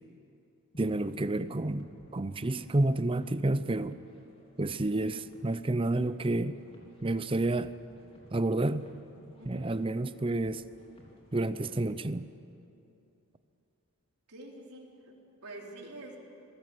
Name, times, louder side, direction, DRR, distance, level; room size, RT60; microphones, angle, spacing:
sound 1, 0.7-12.0, equal, 25° left, 3.6 m, -57 dB
voice 1, 0.8-4.0 4.6-6.6 7.0-7.7 8.3-8.9 9.4-10.6 11.3-12.3, right 2 dB, 25° right, 13 dB, 0.6 m, -30 dB
voice 2, 9.4-9.7 14.3-15.2 15.4-16.2, right 2 dB, 85° right, -1 dB, 3.8 m, -46 dB
26.5 x 18.5 x 7.9 m, 2.8 s
head